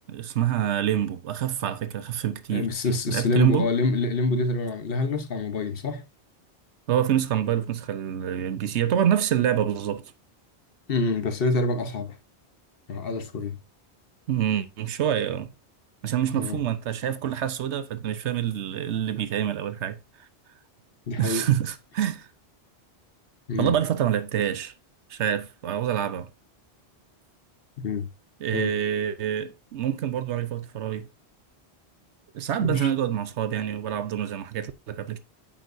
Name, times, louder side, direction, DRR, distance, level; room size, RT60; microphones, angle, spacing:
voice 1, 0.1-2.7 3.1-3.7 6.9-10.1 14.3-15.5 16.0-20.0 21.2-22.3 23.6-24.7 25.1-26.3 28.4-31.1 32.3-35.2, right 10 dB, 90° right, 1.0 m, -26 dB
voice 2, 2.5-6.0 10.9-12.2 12.9-13.6 16.3-16.6 21.1-21.5 23.5-23.7 27.8-28.1 28.5-28.7 32.6-32.9, left 2 dB, 60° left, 1.1 m, -26 dB
9.3 x 7.4 x 2.6 m
omnidirectional pair, 1.1 m